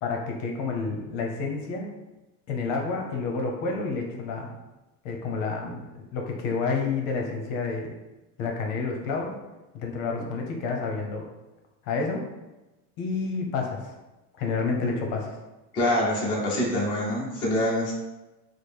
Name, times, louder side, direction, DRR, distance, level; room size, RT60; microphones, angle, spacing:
voice 1, 0.0-1.9 2.5-4.6 5.0-7.9 8.4-9.3 9.7-11.2 11.8-12.2 13.0-13.9 14.4-15.4, left 4 dB, 50° left, 1 dB, 0.7 m, -29 dB
voice 2, 15.7-17.9, left 1 dB, 15° left, -6 dB, 0.4 m, -25 dB
4.5 x 2.0 x 3.3 m, 1.1 s
cardioid pair, 175°, 38 cm